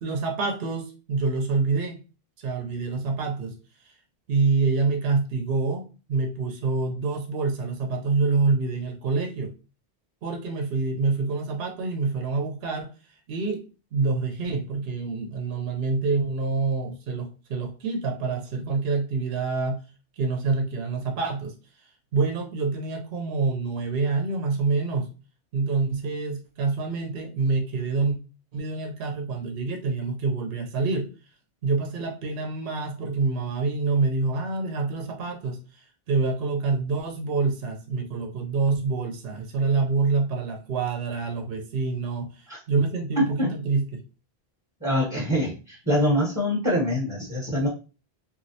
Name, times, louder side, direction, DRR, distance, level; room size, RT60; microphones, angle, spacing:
voice 1, 0.0-2.0 2.4-3.5 3.8-3.9 4.3-9.5 10.2-12.9 13.3-13.7 13.9-19.8 20.2-21.5 22.1-25.1 25.5-28.2 28.5-31.1 31.6-44.0, right 4 dB, 70° right, 3 dB, 0.8 m, -26 dB
voice 2, 43.2-43.5 44.8-47.7, equal, 20° right, -4 dB, 0.8 m, -24 dB
3.0 x 2.6 x 2.7 m, 0.33 s
omnidirectional pair, 1.1 m